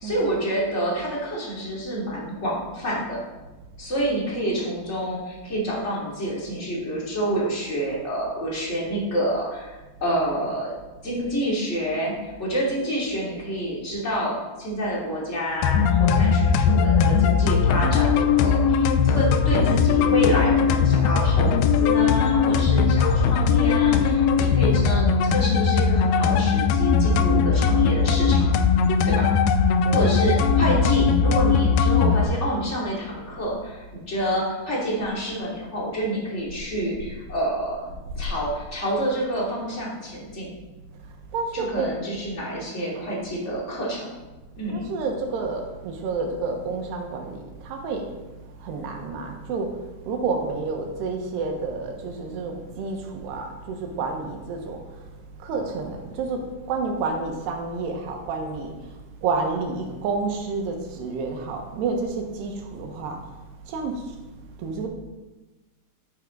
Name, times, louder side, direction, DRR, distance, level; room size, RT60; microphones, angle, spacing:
voice 1, 0.0-3.2 3.8-10.7 11.0-28.5 29.0-29.3 29.9-37.8 38.1-40.5 41.5-44.1 44.6-44.8, right 1 dB, 20° left, -5 dB, 2.4 m, -28 dB
sound 1, 15.6-32.2, left 6 dB, 80° left, 2.4 m, -19 dB
voice 2, 41.3-41.9 44.7-48.1 48.6-49.7 50.1-54.8 55.4-56.4 56.7-58.7 59.2-63.2 63.7-63.9 64.6-64.9, right 4 dB, 90° right, 2 dB, 3.4 m, -29 dB
11.0 x 9.0 x 3.9 m, 1.1 s
omnidirectional pair, 4.7 m